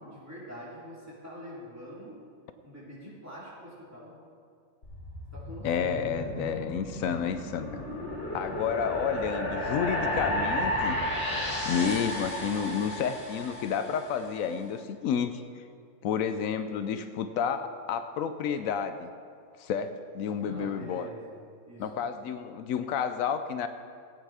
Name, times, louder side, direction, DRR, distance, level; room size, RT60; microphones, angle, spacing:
voice 1, 0.0-2.2 2.6-4.1 5.3-6.6 20.4-21.4 21.6-22.0, equal, 10° right, -8 dB, 3.4 m, -45 dB
sound 1, 4.8-14.2, left 1 dB, 60° left, 2.8 m, -33 dB
voice 2, 5.6-7.8 8.3-11.0 11.6-15.6 16.0-19.1 19.6-21.1 21.8-23.7, left 7 dB, 85° left, 10 dB, 1.0 m, -30 dB
15.0 x 8.9 x 4.9 m, 2.2 s
omnidirectional pair, 1.4 m